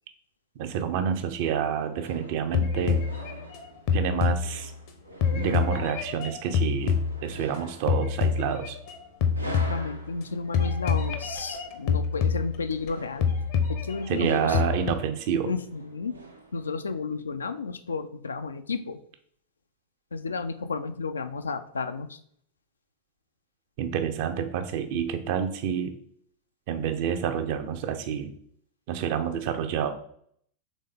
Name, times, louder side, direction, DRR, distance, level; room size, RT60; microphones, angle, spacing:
voice 1, 0.6-3.0 3.9-4.7 5.3-8.8 14.1-15.5 23.8-25.9 26.7-28.3 28.9-29.9, right 8 dB, 50° right, 8 dB, 0.5 m, -28 dB
sound 1, 1.4-16.8, right 2 dB, 85° right, 0.7 m, -46 dB
sound 2, 2.5-4.9 5.2-7.6 7.9-9.0 9.2-10.2 10.5-12.9 13.2-14.9, left 6 dB, 45° left, 0.7 m, -27 dB
voice 2, 9.4-13.3 13.7-14.6 15.4-16.1 16.5-19.0 20.1-22.2, left 4 dB, 75° left, 10 dB, 0.3 m, -32 dB
4.1 x 3.3 x 3.4 m, 0.64 s
figure-of-eight pair, 90°, 0 cm